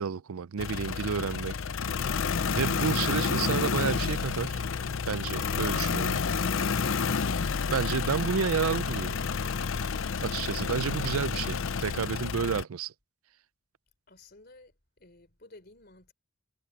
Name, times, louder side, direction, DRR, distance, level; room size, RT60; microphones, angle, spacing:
voice 1, 0.0-1.6 2.5-4.6 5.1-6.2 7.7-9.2 10.2-12.9, right 6 dB, 85° right, 0.5 m, -30 dB
sound 1, 0.6-12.6, left 5 dB, 65° left, 0.6 m, -30 dB
voice 2, 14.1-16.1, left 2 dB, 45° left, 3.6 m, -54 dB
head